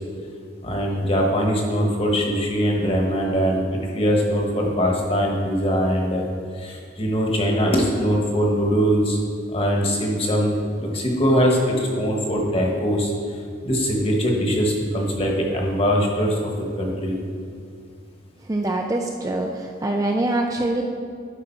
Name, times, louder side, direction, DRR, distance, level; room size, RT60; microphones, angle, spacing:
voice 1, 0.6-6.2 6.5-9.2 9.5-13.4 13.6-16.5 16.8-17.2, equal, 30° left, -1 dB, 1.3 m, -22 dB
voice 2, 18.4-20.8, right 2 dB, 20° right, 2 dB, 0.4 m, -24 dB
11.5 x 4.9 x 4.5 m, 2.3 s
head